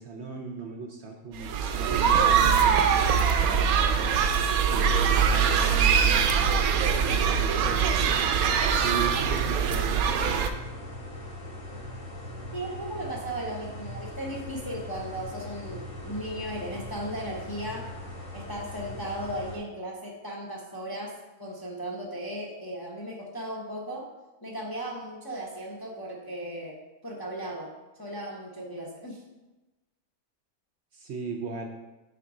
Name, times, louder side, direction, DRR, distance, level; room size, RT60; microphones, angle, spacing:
voice 1, 0.0-4.2 4.7-6.5 6.8-8.3 8.8-10.6 30.9-31.6, right 4 dB, 60° right, 2 dB, 0.8 m, -37 dB
sound 1, 1.4-10.5, right 7 dB, 80° right, 1.0 m, -23 dB
sound 2, 5.1-19.6, left 1 dB, 75° left, 1.8 m, -40 dB
voice 2, 12.5-17.9 18.3-24.1 24.4-26.8 27.0-27.7 28.0-29.2, right 1 dB, 20° left, -3 dB, 0.6 m, -36 dB
6.7 x 3.8 x 4.9 m, 1.1 s
omnidirectional pair, 1.5 m